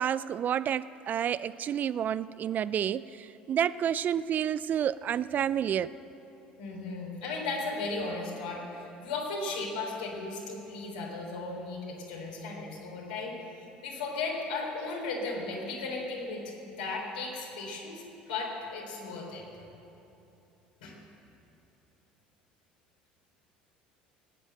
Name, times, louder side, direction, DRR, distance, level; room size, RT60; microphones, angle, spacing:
voice 1, 0.0-5.9, right 9 dB, 40° right, 18 dB, 0.3 m, -29 dB
voice 2, 6.6-13.4 13.8-19.4 20.8-20.9, left 3 dB, 75° left, -1 dB, 3.4 m, -36 dB
19.5 x 9.0 x 7.7 m, 3.0 s
figure-of-eight pair, 65°, 5 cm